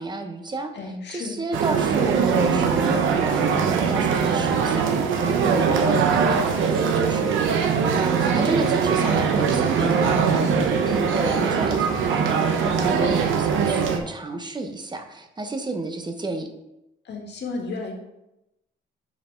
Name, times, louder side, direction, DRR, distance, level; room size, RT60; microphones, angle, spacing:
voice 1, 0.0-0.7 1.1-4.9 5.4-16.5, right 2 dB, 20° right, 6 dB, 1.0 m, -31 dB
voice 2, 0.7-1.4 11.3-11.6 17.1-17.9, left 3 dB, 60° left, 2 dB, 1.7 m, -33 dB
sound 1, 1.5-14.0, right 6 dB, 80° right, 0.9 m, -21 dB
6.0 x 4.5 x 5.2 m, 0.90 s
cardioid pair, 90°, 20 cm